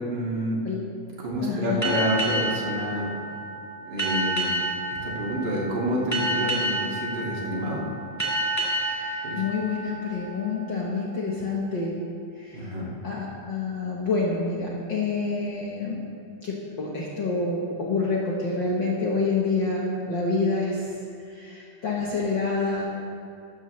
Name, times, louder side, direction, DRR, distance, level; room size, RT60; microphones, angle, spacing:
voice 1, 0.1-0.6 1.2-3.1 3.8-4.5 4.9-7.9 9.2-9.4 12.5-12.9, equal, 35° right, -4 dB, 2.3 m, -28 dB
voice 2, 1.4-2.0 8.8-12.0 12.4-12.7 13.0-16.0 16.4-21.0 21.3-22.8, left 3 dB, 80° left, -4 dB, 1.0 m, -28 dB
sound 1, 1.8-11.0, right 2 dB, 20° left, 0.4 m, -30 dB
14.0 x 13.0 x 3.2 m, 2.5 s
omnidirectional pair, 3.9 m